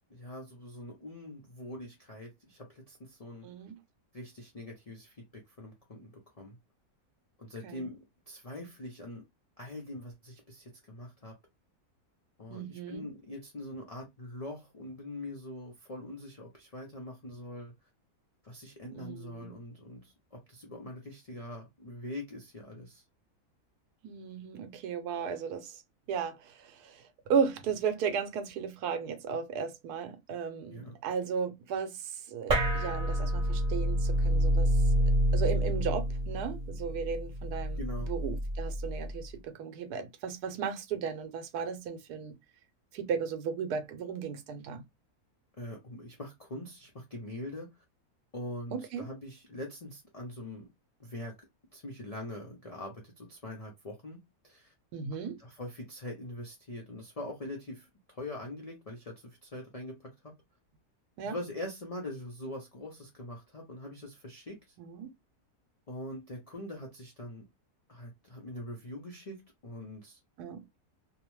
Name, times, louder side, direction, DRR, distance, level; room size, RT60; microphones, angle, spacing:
voice 1, 0.1-3.5 4.1-6.6 7.4-8.0 8.3-9.2 9.6-11.3 12.4-17.7 18.4-23.0 30.7-31.0 37.8-38.1 45.6-47.7 48.3-50.7 51.0-51.3 51.7-54.7 55.4-60.3 61.2-64.6 65.9-67.5 67.9-70.2, left 1 dB, 70° left, 0.3 m, -43 dB
voice 2, 3.4-3.8 7.6-7.9 12.5-13.1 18.9-19.6 24.0-25.8 26.1-34.7 35.3-37.8 38.1-42.4 42.9-44.8 48.7-49.1 54.9-55.4 61.2-61.4 64.8-65.1 70.4-70.6, right 6 dB, 85° right, 1.1 m, -35 dB
sound 1, 32.5-39.2, equal, 60° right, 0.4 m, -28 dB
2.8 x 2.0 x 3.0 m
omnidirectional pair, 1.6 m